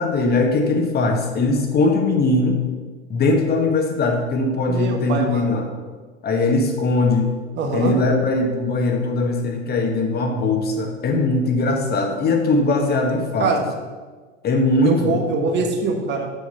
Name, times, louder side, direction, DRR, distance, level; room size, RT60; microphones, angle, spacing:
voice 1, 0.0-2.6 3.1-5.7 6.2-7.3 7.7-13.5 14.4-15.2, left 2 dB, 25° left, 3 dB, 1.2 m, -20 dB
voice 2, 4.7-5.5 7.6-8.0 13.4-13.6 14.8-16.3, right 4 dB, 30° right, 3 dB, 1.3 m, -23 dB
7.0 x 6.3 x 5.6 m, 1.4 s
hypercardioid pair, 95°, 37 cm